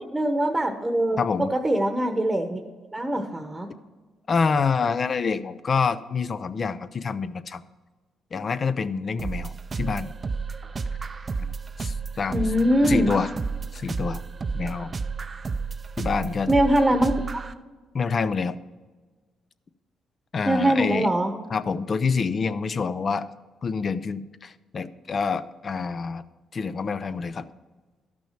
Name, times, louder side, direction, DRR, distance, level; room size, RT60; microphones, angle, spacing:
voice 1, 0.1-2.6 2.9-3.7 12.3-13.1 16.5-17.1 20.5-21.3, right 1 dB, 15° right, 5 dB, 1.0 m, -22 dB
voice 2, 1.2-1.5 4.3-7.6 8.3-10.1 11.4-12.5 12.9-13.3 13.7-14.2 14.5-14.9 16.0-16.5 17.9-18.6 20.3-21.1 21.5-23.3 23.6-26.2 26.5-27.5, left 5 dB, 45° left, 13 dB, 0.5 m, -27 dB
sound 1, 9.2-17.5, right 4 dB, 35° right, 0.5 m, -32 dB
12.5 x 6.2 x 5.7 m, 1.3 s
cardioid pair, 90°, 0 cm